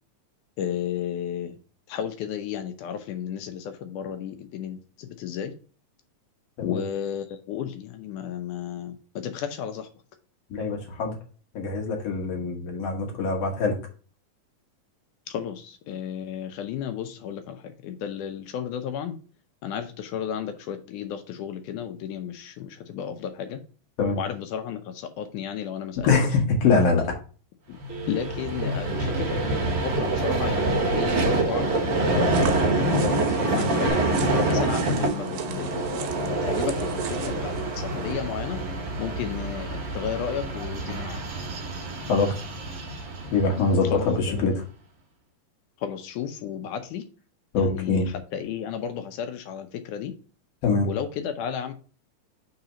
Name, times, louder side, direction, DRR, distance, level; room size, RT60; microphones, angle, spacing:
voice 1, 0.6-1.5 1.9-5.5 6.6-9.0 9.2-9.9 15.3-17.6 17.8-19.2 19.6-23.6 24.2-26.1 28.1-32.3 32.6-34.0 34.4-38.6 39.0-41.2 43.9-44.5 45.8-47.0 47.5-48.0 48.3-50.1 50.9-51.7, left 9 dB, 75° left, 8 dB, 1.9 m, -33 dB
voice 2, 10.5-11.1 11.5-13.8 24.0-24.2 26.0-27.2 42.1-42.3 43.3-44.6 47.5-48.1 50.6-50.9, left 4 dB, 60° left, 2 dB, 1.8 m, -23 dB
Vehicle, 27.8-44.1, right 2 dB, 60° right, 1.8 m, -26 dB
Telephone, 27.9-28.6 29.0-29.8 30.5-31.3 31.8-32.8 33.5-33.9, right 7 dB, 40° right, 1.1 m, -36 dB
sound 1, 32.1-38.1, right 8 dB, 75° right, 2.3 m, -40 dB
4.8 x 4.0 x 5.5 m, 0.39 s
omnidirectional pair, 4.0 m